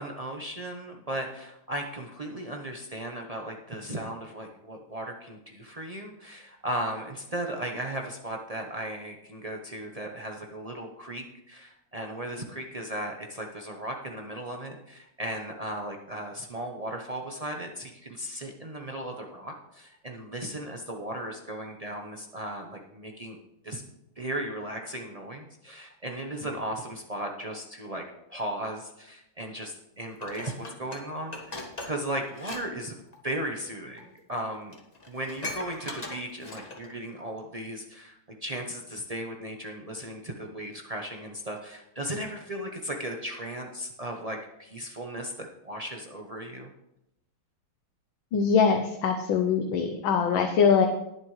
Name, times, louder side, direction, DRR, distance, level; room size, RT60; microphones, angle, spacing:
voice 1, 0.0-23.4 23.6-23.8 24.2-28.0 28.3-33.0 33.2-34.8 35.1-46.7, right 1 dB, 80° right, 1 dB, 0.3 m, -36 dB
Dishes pots and pans, 30.2-32.6 32.9-33.2 34.0-34.1 34.4-34.5 34.7-36.9 37.4-37.5, left 2 dB, 20° left, 1.3 m, -40 dB
voice 2, 48.3-50.9, left 6 dB, 70° left, 5 dB, 1.6 m, -23 dB
19.5 x 7.4 x 3.2 m, 0.86 s
omnidirectional pair, 2.4 m